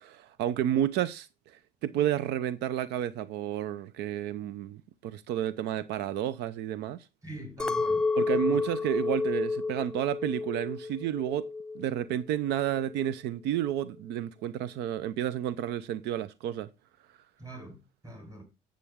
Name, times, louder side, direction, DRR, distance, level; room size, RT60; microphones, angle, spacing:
voice 1, 0.1-7.0 8.2-11.5 11.7-16.7, right 11 dB, 85° right, 0.6 m, -31 dB
voice 2, 7.2-8.0 8.3-8.6 17.4-17.8 18.0-18.4, right 1 dB, 20° right, 5.0 m, -43 dB
Chink clink, 7.6-12.0 12.3-12.9, left 4 dB, 5° left, 0.6 m, -31 dB
10.0 x 7.6 x 3.6 m
cardioid pair, 110°, 17 cm